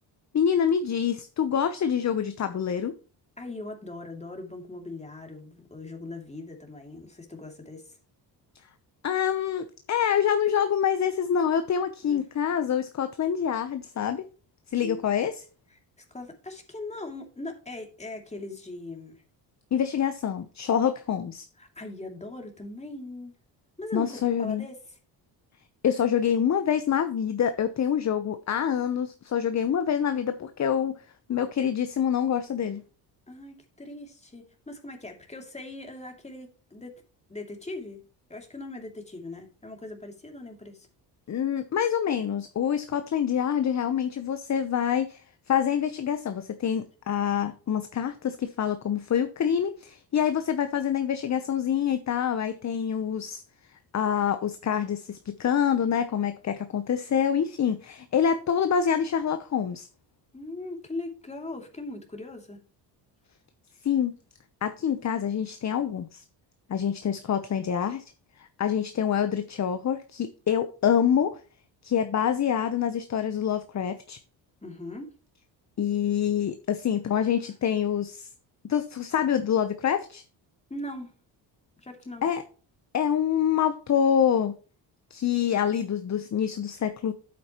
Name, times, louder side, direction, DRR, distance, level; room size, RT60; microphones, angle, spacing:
voice 1, 0.3-2.9 9.0-14.3 14.7-15.4 19.7-21.4 23.9-24.7 25.8-31.0 31.3-32.8 41.3-45.2 45.5-53.4 53.9-59.9 63.8-64.1 64.6-66.2 66.7-68.0 68.4-71.4 71.8-74.2 75.8-78.3 78.7-80.2 82.2-82.4 82.9-84.5 85.1-87.1, left 8 dB, 40° left, 0.8 m, -26 dB
voice 2, 3.4-8.0 12.0-12.2 14.8-15.0 16.0-19.2 21.6-23.3 23.8-24.8 33.3-36.9 37.3-38.0 38.3-40.9 60.3-62.6 74.6-75.1 80.7-81.1 81.8-82.3, left 2 dB, 15° left, 2.6 m, -40 dB
10.0 x 8.5 x 3.0 m
cardioid pair, 85°, 44 cm